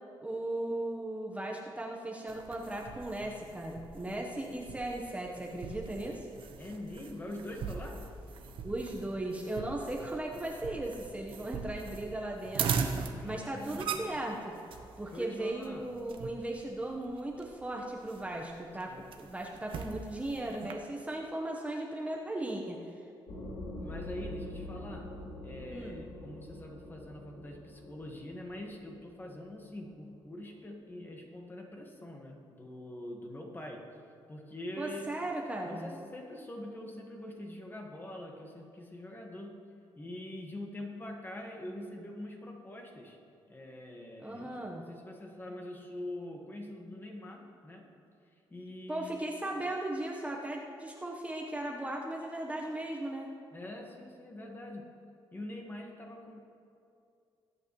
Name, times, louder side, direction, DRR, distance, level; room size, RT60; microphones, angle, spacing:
voice 1, 0.2-6.3 8.6-12.9 13.2-14.5 15.0-22.8 25.7-26.0 34.8-35.9 44.2-44.8 48.9-53.3, right 1 dB, 15° right, -1 dB, 1.2 m, -37 dB
sound 1, 2.3-20.7, right 6 dB, 75° right, 1.0 m, -41 dB
voice 2, 6.6-8.2 13.1-14.0 15.1-16.0 18.9-19.1 23.8-34.0 34.3-35.2 35.6-39.6 39.9-43.2 43.5-48.0 48.5-49.4 53.5-55.0 55.3-56.6, left 1 dB, 20° left, 1 dB, 1.7 m, -44 dB
sound 2, 23.3-30.6, left 1 dB, 80° left, 3.4 m, -45 dB
21.0 x 8.4 x 3.2 m, 2.5 s
cardioid pair, 100°, 9 cm